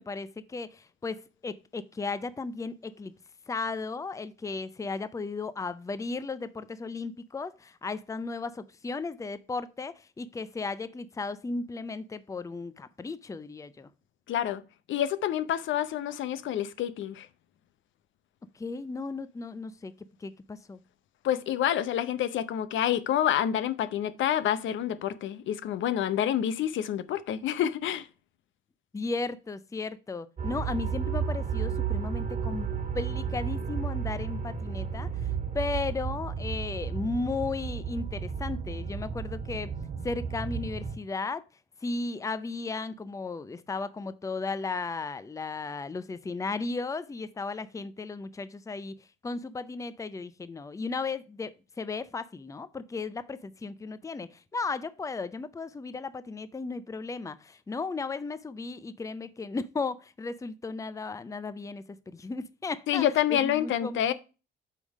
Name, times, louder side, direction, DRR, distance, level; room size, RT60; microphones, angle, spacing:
voice 1, 0.0-3.1 3.5-13.9 18.5-19.9 20.2-20.8 28.9-32.7 32.9-39.7 40.0-41.4 41.8-64.1, left 4 dB, 15° left, 0.5 m, -35 dB
voice 2, 14.3-14.6 14.9-17.3 21.2-28.1 62.9-64.1, left 10 dB, 75° left, 0.7 m, -28 dB
sound 1, 30.4-41.0, right 6 dB, 40° right, 1.5 m, -33 dB
8.3 x 3.6 x 5.2 m
cardioid pair, 90°, 20 cm